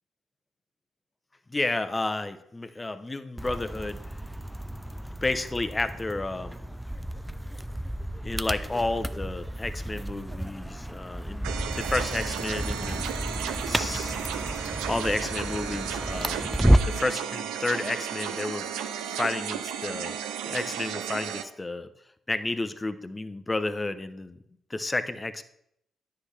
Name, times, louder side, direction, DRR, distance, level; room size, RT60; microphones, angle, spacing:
voice 1, 1.5-4.0 5.2-6.7 8.2-13.0 13.7-14.1 14.8-16.5 16.9-18.7 19.2-20.2 20.5-21.9 22.3-24.4 24.7-25.4, left 2 dB, 25° left, 11 dB, 0.7 m, -31 dB
sound 1, 3.4-17.1, equal, 5° right, 0.4 m, -31 dB
sound 2, 11.4-21.4, right 8 dB, 85° right, 0.5 m, -34 dB
9.8 x 5.9 x 3.3 m, 0.75 s
hypercardioid pair, 45°, 0 cm